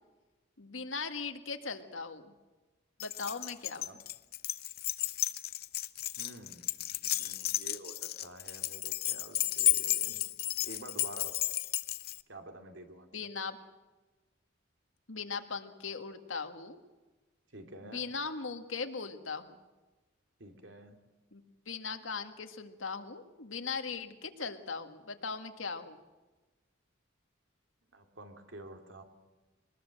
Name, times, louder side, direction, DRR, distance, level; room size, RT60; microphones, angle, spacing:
voice 1, 0.6-2.3 3.0-3.9 13.1-13.6 15.1-16.8 17.8-19.5 21.3-26.0, left 5 dB, 80° left, 7 dB, 1.8 m, -39 dB
Keys jangling, 3.0-12.2, left 14 dB, 50° left, 0.7 m, -33 dB
voice 2, 6.2-10.2 10.6-11.5 12.3-13.3 15.7-15.8 17.5-18.1 20.4-21.0 27.9-29.0, right 1 dB, 70° right, 5 dB, 2.7 m, -49 dB
22.5 x 20.0 x 7.7 m, 1.2 s
head